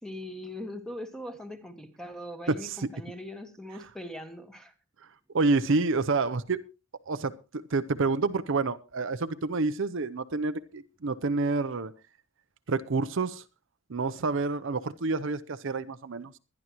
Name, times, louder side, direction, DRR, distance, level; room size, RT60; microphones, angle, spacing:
voice 1, 0.0-4.7, left 1 dB, 5° left, 1.4 m, -41 dB
voice 2, 2.5-2.9 5.3-6.6 7.1-11.9 12.7-13.4 13.9-16.3, right 3 dB, 60° right, 0.6 m, -28 dB
22.0 x 11.0 x 3.0 m
head